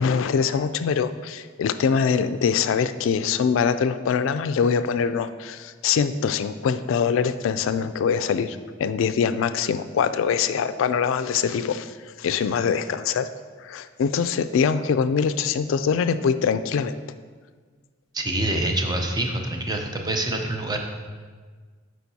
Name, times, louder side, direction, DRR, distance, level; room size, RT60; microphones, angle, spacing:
voice 1, 0.0-13.3 13.6-16.9, left 6 dB, 70° left, 11 dB, 0.3 m, -23 dB
voice 2, 18.1-20.8, right 1 dB, 20° right, 2 dB, 0.6 m, -26 dB
8.8 x 4.6 x 2.8 m, 1.5 s
head